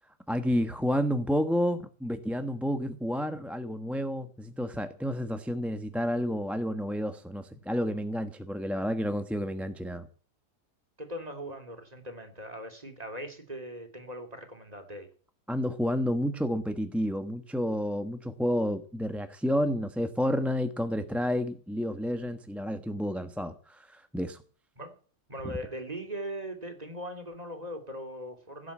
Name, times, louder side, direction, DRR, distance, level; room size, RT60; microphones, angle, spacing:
voice 1, 0.3-10.1 15.5-24.4, equal, ahead, 7 dB, 1.0 m, -30 dB
voice 2, 11.0-15.1 24.8-25.0 25.3-28.7, equal, 20° right, 6 dB, 3.1 m, -40 dB
16.5 x 9.2 x 8.5 m, 0.42 s
omnidirectional pair, 1.8 m